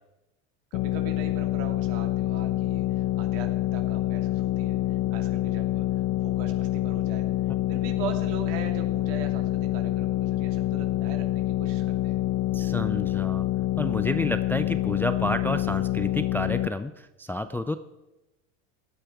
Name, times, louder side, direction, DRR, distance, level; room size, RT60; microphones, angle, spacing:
sound 1, 0.7-16.7, left 14 dB, 55° left, 0.8 m, -27 dB
voice 1, 0.7-5.9 6.2-7.3 7.7-12.2, right 7 dB, 70° right, 4 dB, 2.6 m, -40 dB
voice 2, 12.5-13.5 13.8-17.8, left 1 dB, 5° left, 10 dB, 0.3 m, -30 dB
16.5 x 9.9 x 4.8 m, 0.98 s
supercardioid pair, 100°, 39 cm